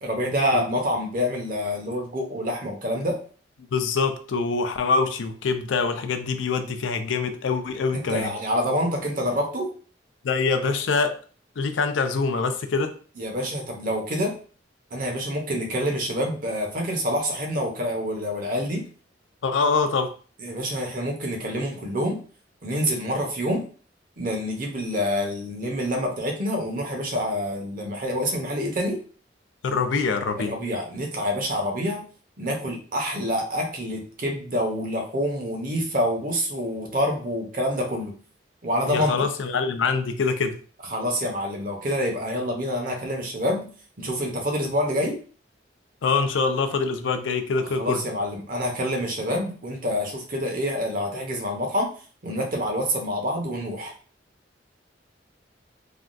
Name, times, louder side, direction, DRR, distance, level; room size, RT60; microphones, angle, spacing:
voice 1, 0.0-3.2 7.9-9.7 13.2-14.4 14.9-18.9 20.4-22.2 22.6-23.7 24.2-29.0 30.4-32.0 32.4-38.2 38.6-39.1 40.9-43.7 44.0-45.2 47.8-51.9 52.2-53.9, equal, 50° right, 1 dB, 0.8 m, -27 dB
voice 2, 3.7-8.3 10.2-11.2 11.6-13.0 19.4-20.1 29.6-30.5 38.9-40.6 46.0-48.0, left 4 dB, 90° left, 8 dB, 0.4 m, -24 dB
3.4 x 2.2 x 2.5 m, 0.40 s
head